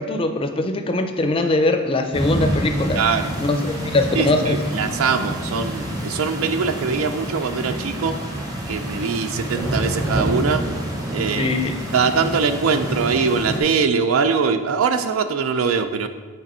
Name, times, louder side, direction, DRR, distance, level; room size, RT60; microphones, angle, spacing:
voice 1, 0.0-3.0 3.4-4.6 11.4-11.7, left 2 dB, 25° left, 6 dB, 0.4 m, -21 dB
sound 1, 2.1-13.6, right 1 dB, 20° right, 0.8 m, -27 dB
voice 2, 3.0-3.3 4.1-8.2 8.7-10.6 11.1-16.1, right 5 dB, 90° right, 9 dB, 0.4 m, -22 dB
7.5 x 3.4 x 4.2 m, 1.4 s
head